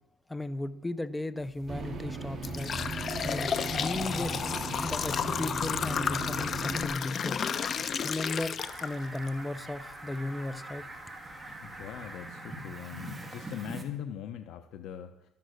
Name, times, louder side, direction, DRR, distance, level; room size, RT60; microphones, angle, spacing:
voice 1, 0.3-2.7 3.2-4.4 4.8-7.4 8.0-10.9, left 2 dB, 10° left, 13 dB, 0.6 m, -36 dB
sound 1, 1.5-1.7 2.2-9.3 9.7-9.8 10.7-10.8 11.3-11.4 11.8-12.1, left 7 dB, 40° left, 0.9 m, -32 dB
sound 2, 1.7-6.8, right 3 dB, 30° right, 2.6 m, -37 dB
Fowl, 8.6-13.8, right 1 dB, 10° right, 2.4 m, -43 dB
voice 2, 11.6-15.3, left 10 dB, 65° left, 8 dB, 0.9 m, -41 dB
13.0 x 12.5 x 6.6 m, 0.92 s
cardioid pair, 130°, 0 cm